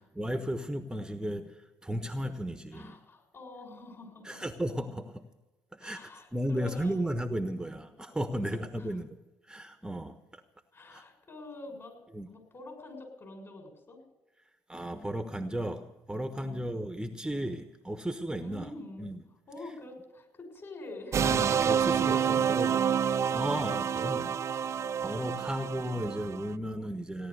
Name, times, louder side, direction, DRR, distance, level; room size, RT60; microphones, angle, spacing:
voice 1, 0.2-3.0 4.2-5.3 5.7-9.2 9.4-10.4 10.9-11.0 12.1-12.3 14.7-18.7 19.0-19.2 21.2-22.7 23.3-27.3, equal, 10° right, 8 dB, 1.2 m, -35 dB
voice 2, 2.7-4.4 5.8-7.0 8.5-9.0 10.7-12.0 12.3-14.1 16.3-16.7 18.4-19.1 19.5-21.3 22.1-24.0 24.7-24.8 26.6-26.9, left 2 dB, 40° left, 4 dB, 6.6 m, -46 dB
sound 1, 21.1-26.5, right 8 dB, 45° right, 0.4 m, -28 dB
17.0 x 10.5 x 6.7 m, 1.1 s
hypercardioid pair, 55°, 7 cm